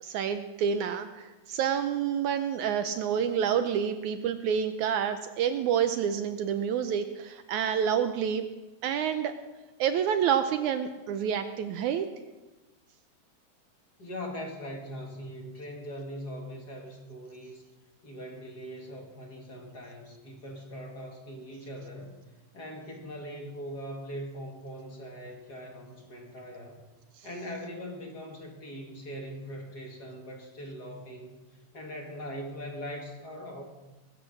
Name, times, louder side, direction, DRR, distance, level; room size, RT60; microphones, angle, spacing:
voice 1, 0.0-8.5 8.8-9.3 9.8-12.1 27.2-27.3, right 8 dB, 75° right, 9 dB, 1.9 m, -28 dB
voice 2, 14.0-17.6 18.0-22.2 22.5-26.8 27.2-31.4 31.7-33.6, equal, 35° left, 1 dB, 2.0 m, -41 dB
21.0 x 8.3 x 6.4 m, 1.1 s
omnidirectional pair, 3.8 m